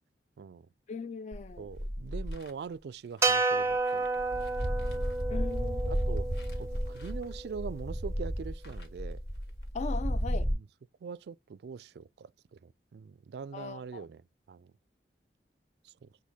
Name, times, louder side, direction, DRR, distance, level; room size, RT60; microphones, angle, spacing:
voice 1, 0.9-1.7 5.3-6.0 9.7-10.5 13.5-14.1, left 5 dB, 40° left, 0.3 m, -39 dB
sound 1, 1.3-2.5 3.2-3.3 3.7-10.5, equal, 70° left, 1.4 m, -33 dB
voice 2, 1.6-4.5 4.8-5.1 5.9-6.3 6.6-9.2 10.5-10.6 11.0-14.2 14.5-14.7 15.8-16.1, right 5 dB, 65° right, 0.3 m, -43 dB
sound 2, 3.2-7.6, right 3 dB, 15° right, 0.6 m, -31 dB
6.3 x 2.2 x 3.4 m
head